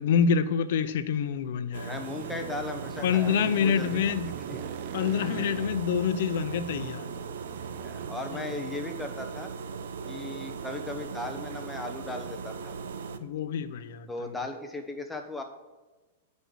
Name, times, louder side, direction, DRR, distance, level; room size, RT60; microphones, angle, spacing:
voice 1, 0.0-2.0 3.0-4.3 4.9-7.1 8.3-8.4 13.2-14.1, left 7 dB, 65° left, 12 dB, 0.6 m, -26 dB
sound 1, 1.7-13.2, right 5 dB, 80° right, 0.6 m, -38 dB
voice 2, 1.8-4.0 4.2-4.6 7.8-9.5 10.1-12.7 14.1-15.4, left 2 dB, 5° left, 3 dB, 1.0 m, -37 dB
sound 2, 2.2-8.1, right 13 dB, 45° right, 0.4 m, -42 dB
9.4 x 5.3 x 6.3 m, 1.2 s
supercardioid pair, 150°, 0 cm